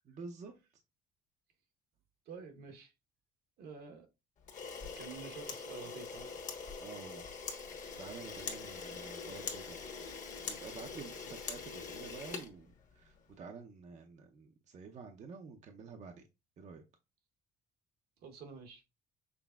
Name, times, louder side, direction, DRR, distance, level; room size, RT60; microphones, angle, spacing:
voice 1, 0.0-0.5 6.8-7.3 8.0-9.8 10.5-16.3 16.6-16.8, right 5 dB, 45° right, 0.6 m, -49 dB
voice 2, 2.3-2.9 3.6-4.1 5.0-6.3 10.9-11.3 18.2-18.8, right 5 dB, 70° right, 1.0 m, -49 dB
Camera, 4.4-13.2, left 5 dB, 50° left, 1.1 m, -43 dB
6.0 x 3.4 x 2.3 m
cardioid pair, 110°, 17 cm